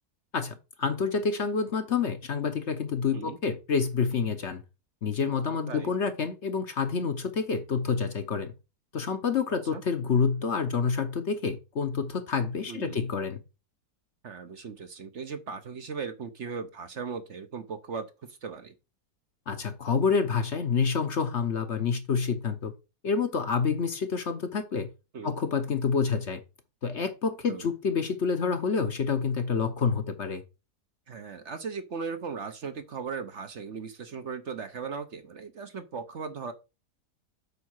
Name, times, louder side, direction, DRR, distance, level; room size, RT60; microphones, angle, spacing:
voice 1, 0.3-4.6 5.0-8.5 8.9-13.4 19.5-22.7 23.0-24.9 25.2-26.4 26.8-30.4, left 5 dB, 50° left, 1.1 m, -28 dB
voice 2, 9.5-9.8 12.7-13.0 14.2-18.7 25.1-25.4 27.5-27.7 31.1-36.5, right 5 dB, 50° right, 1.1 m, -38 dB
8.4 x 4.2 x 6.4 m
omnidirectional pair, 1.7 m